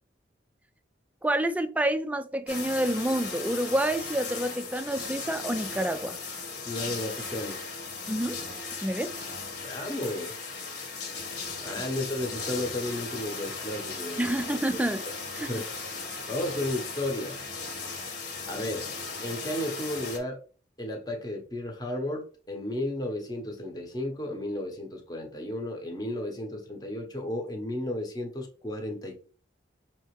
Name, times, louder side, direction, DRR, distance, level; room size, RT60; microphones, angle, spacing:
voice 1, 1.2-6.2 8.1-8.4 8.8-9.1 11.8-11.9 14.2-15.1 15.4-15.6, right 1 dB, 10° right, 0.3 m, -28 dB
sound 1, 2.5-20.2, left 4 dB, 65° left, 1.6 m, -37 dB
voice 2, 6.7-7.6 9.6-10.3 11.6-14.2 15.5-15.7 16.3-17.4 18.4-18.9 19.2-20.4 20.8-29.2, left 1 dB, 20° left, 0.9 m, -33 dB
6.0 x 2.8 x 3.1 m
head